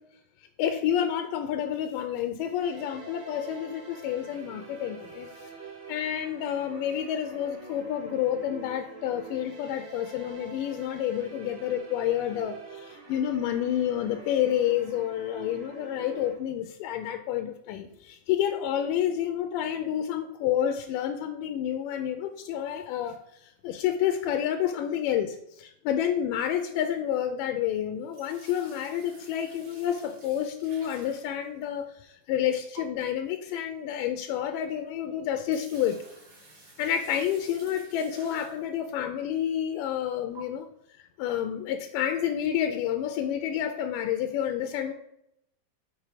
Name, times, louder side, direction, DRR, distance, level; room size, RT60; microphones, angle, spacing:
voice 1, 0.4-5.5 5.9-36.0 36.8-40.7 41.2-44.9, left 10 dB, 85° left, 6 dB, 2.2 m, -29 dB
sound 1, 2.6-16.3, right 4 dB, 80° right, 4.2 m, -46 dB
sound 2, 28.0-31.9 32.8-32.9 34.8-34.9 35.3-38.9 39.5-39.6 40.4-40.5 42.0-42.2, right 3 dB, 40° right, 2.8 m, -52 dB
7.5 x 5.2 x 4.9 m, 0.78 s
omnidirectional pair, 3.9 m